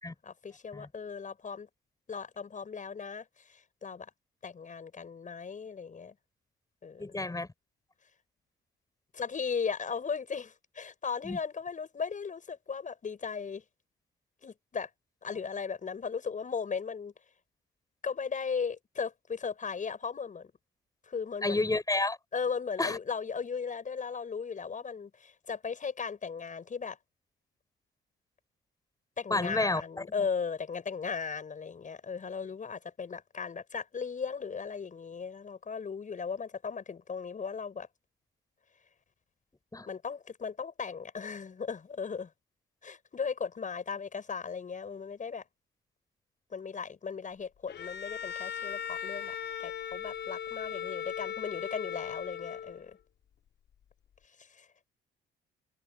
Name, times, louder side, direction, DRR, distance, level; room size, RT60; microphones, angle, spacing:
voice 1, 0.2-1.7 2.1-4.1 4.4-6.1 6.8-7.1 9.1-13.6 14.4-14.9 15.2-17.1 18.0-20.5 21.1-21.6 22.3-27.0 29.2-37.9 39.9-42.3 42.8-45.4 46.5-49.3 49.6-53.0 54.4-54.7, left 6 dB, 40° left, 6.7 m, -37 dB
voice 2, 7.0-7.5 11.2-11.4 21.4-22.2 22.8-23.0 29.3-29.8 39.7-39.9, left 2 dB, 20° left, 6.6 m, -30 dB
Bowed string instrument, 47.7-52.9, left 8 dB, 65° left, 6.2 m, -38 dB
open air
cardioid pair, 90°, 20 cm